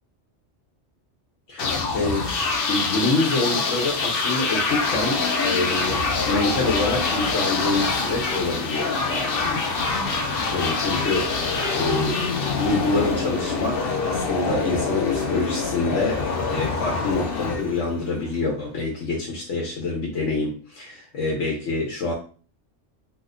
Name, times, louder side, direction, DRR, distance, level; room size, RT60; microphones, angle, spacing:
voice 1, 1.5-9.6 10.5-12.2 12.5-16.2 16.5-22.1, left 3 dB, 85° left, -2 dB, 1.1 m, -26 dB
sound 1, 1.6-18.3, left 4 dB, 60° left, 0.7 m, -25 dB
2.9 x 2.1 x 3.6 m, 0.39 s
omnidirectional pair, 1.2 m